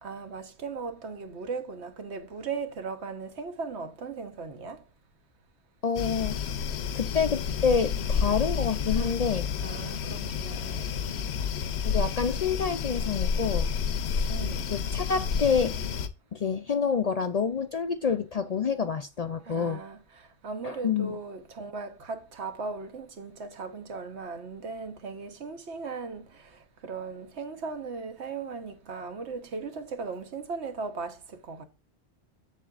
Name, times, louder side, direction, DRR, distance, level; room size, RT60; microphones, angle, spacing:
voice 1, 0.0-4.8 8.9-9.2 9.6-11.4 14.3-14.6 19.5-31.6, right 4 dB, 80° right, 1.3 m, -38 dB
voice 2, 5.8-6.4 6.9-9.5 11.8-13.7 14.7-15.7 16.3-19.8 20.6-21.2, left 6 dB, 55° left, 0.4 m, -27 dB
sound 1, 5.9-16.1, left 6 dB, 75° left, 1.0 m, -30 dB
7.5 x 7.3 x 2.4 m
omnidirectional pair, 1.1 m